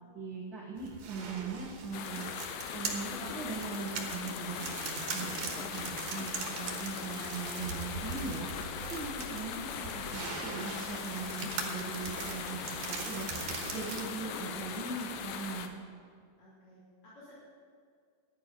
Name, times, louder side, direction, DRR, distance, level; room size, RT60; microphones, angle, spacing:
voice 1, 0.1-2.3 2.7-8.5 8.9-13.3 13.7-15.7, right 4 dB, 85° right, -4 dB, 1.0 m, -40 dB
sound 1, 0.8-14.0, right 5 dB, 65° right, 2.4 m, -41 dB
sound 2, 1.9-15.7, left 7 dB, 75° left, 2.2 m, -40 dB
voice 2, 9.8-10.2 16.4-17.4, left 1 dB, 40° left, -11 dB, 3.3 m, -57 dB
12.0 x 10.0 x 5.2 m, 2.1 s
omnidirectional pair, 4.3 m